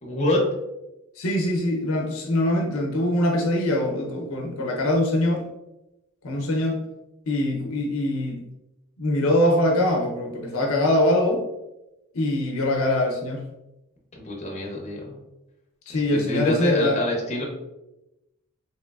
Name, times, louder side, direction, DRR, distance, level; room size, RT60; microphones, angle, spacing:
voice 1, 0.0-0.4 14.1-15.2 15.9-17.4, left 1 dB, 35° left, -1 dB, 0.7 m, -26 dB
voice 2, 1.2-5.4 6.2-6.8 7.3-8.4 9.0-11.4 12.1-13.5 15.9-17.0, left 1 dB, 75° left, 1 dB, 0.6 m, -23 dB
3.0 x 2.9 x 2.3 m, 0.94 s
head